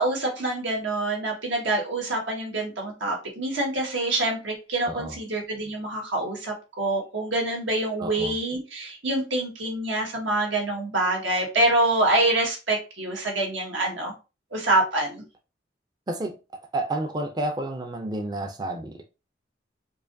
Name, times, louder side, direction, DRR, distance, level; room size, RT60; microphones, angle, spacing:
voice 1, 0.0-14.1 14.5-15.2, right 2 dB, 85° right, 1.5 m, -26 dB
voice 2, 4.8-5.2 8.0-8.4 16.1-16.4 16.7-19.0, right 1 dB, 20° right, 0.4 m, -30 dB
4.7 x 2.5 x 2.6 m
head